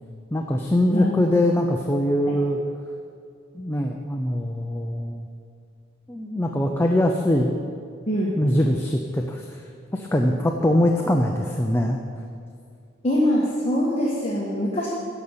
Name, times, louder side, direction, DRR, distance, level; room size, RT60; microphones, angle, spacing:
voice 1, 0.3-2.6 3.5-5.3 6.1-7.6 8.4-9.6 9.9-12.0, left 1 dB, 10° left, 1 dB, 0.5 m, -22 dB
voice 2, 0.9-1.2 2.3-2.4 8.1-8.4 13.0-14.9, equal, 30° left, -4 dB, 1.3 m, -23 dB
13.0 x 5.5 x 8.6 m, 2.3 s
head